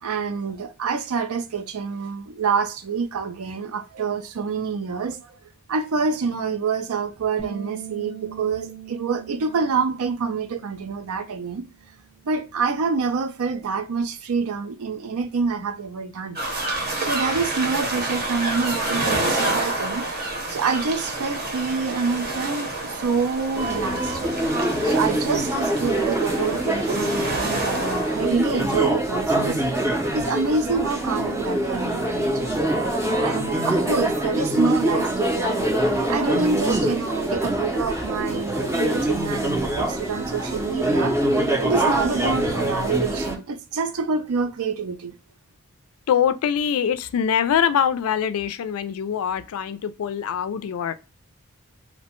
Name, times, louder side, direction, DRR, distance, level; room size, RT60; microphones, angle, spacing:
voice 1, 0.0-5.4 5.7-11.7 12.2-16.4 17.0-20.1 20.5-24.3 24.8-29.6 30.1-32.5 33.2-35.6 36.1-41.2 41.6-45.1, right 5 dB, 75° right, 0.4 m, -27 dB
Bass guitar, 7.4-13.6, right 8 dB, 20° left, 0.8 m, -43 dB
sound 1, 16.4-28.3, right 2 dB, 45° right, 0.8 m, -28 dB
sound 2, 23.5-43.4, right 1 dB, 10° right, 0.5 m, -24 dB
voice 2, 46.1-50.9, left 8 dB, 70° left, 0.3 m, -23 dB
2.7 x 2.1 x 2.8 m
head